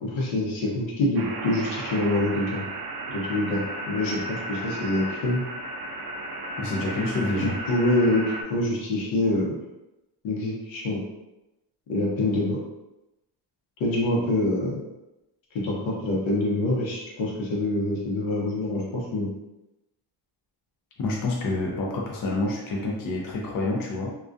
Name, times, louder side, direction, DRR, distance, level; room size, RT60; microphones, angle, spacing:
voice 1, 0.0-2.6 3.1-5.4 7.4-8.2 8.5-9.6 10.2-11.0 11.9-12.6 13.8-14.8 15.6-19.3, left 1 dB, 80° left, -3 dB, 0.9 m, -25 dB
sound 1, 1.2-8.4, right 1 dB, 55° right, 0.6 m, -34 dB
voice 2, 6.6-7.6 21.0-24.1, left 2 dB, 50° left, -2 dB, 0.6 m, -28 dB
2.3 x 2.3 x 2.5 m, 0.95 s
cardioid pair, 100°, 46 cm